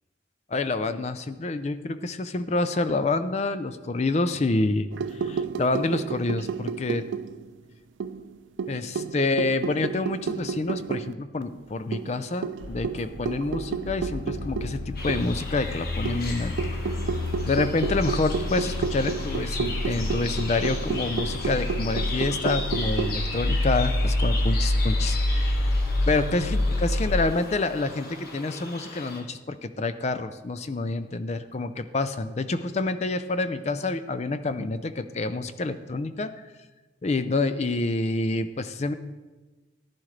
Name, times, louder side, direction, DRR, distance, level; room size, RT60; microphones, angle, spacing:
voice 1, 0.5-7.0 8.7-16.7 17.4-36.5 37.0-38.9, left 3 dB, 35° left, 11 dB, 0.5 m, -28 dB
sound 1, 4.9-7.6 8.0-11.1 11.4-11.5 11.9-15.5 16.1-23.2, right 6 dB, 90° right, 0.4 m, -32 dB
sound 2, 12.6-27.3, left 1 dB, 85° left, 0.6 m, -28 dB
sound 3, 15.0-29.2, left 3 dB, 55° left, 1.4 m, -37 dB
14.5 x 10.5 x 3.2 m, 1.2 s
head